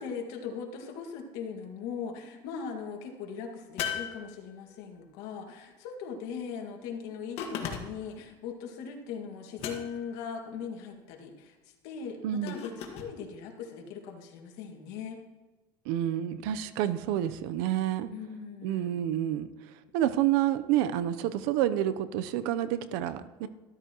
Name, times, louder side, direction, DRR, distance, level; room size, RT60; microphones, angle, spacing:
voice 1, 0.0-11.6 11.8-15.2 18.1-18.9, left 6 dB, 75° left, 2 dB, 2.0 m, -40 dB
sound 1, 3.8-4.9 7.4-8.2 9.6-10.2 12.5-13.1, left 7 dB, 60° left, 1.6 m, -37 dB
voice 2, 12.2-12.6 15.9-18.1 18.6-23.5, right 12 dB, 80° right, 12 dB, 0.7 m, -29 dB
13.0 x 12.5 x 3.0 m, 1.2 s
cardioid pair, 125°, 12 cm